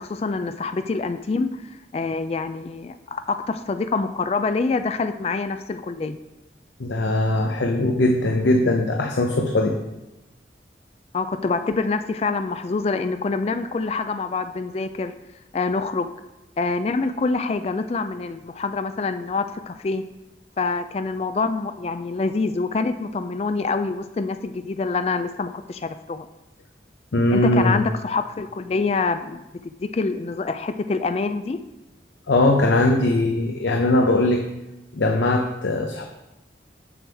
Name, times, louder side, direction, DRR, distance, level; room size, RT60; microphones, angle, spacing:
voice 1, 0.0-6.2 11.1-15.1 15.5-16.1 16.6-20.0 20.6-26.3 27.3-29.4 29.8-31.6, left 4 dB, 35° left, 10 dB, 0.3 m, -26 dB
voice 2, 6.8-9.7 27.1-27.8 32.3-34.4 34.9-36.0, left 1 dB, 85° left, 2 dB, 0.7 m, -20 dB
7.7 x 7.2 x 3.5 m, 0.96 s
head